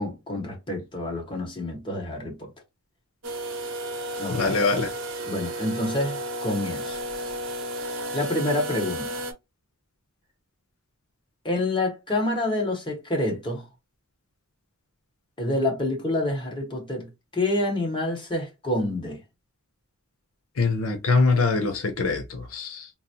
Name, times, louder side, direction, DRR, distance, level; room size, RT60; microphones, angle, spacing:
voice 1, 0.0-2.5 4.2-4.6 5.3-7.0 8.1-9.2 11.4-13.7 15.4-19.2, left 1 dB, 25° left, 1.3 m, -28 dB
sound 1, 3.2-9.3, right 1 dB, 60° right, 0.9 m, -33 dB
voice 2, 4.3-4.9 20.6-22.9, left 3 dB, 70° left, 0.7 m, -23 dB
4.0 x 2.0 x 2.7 m
head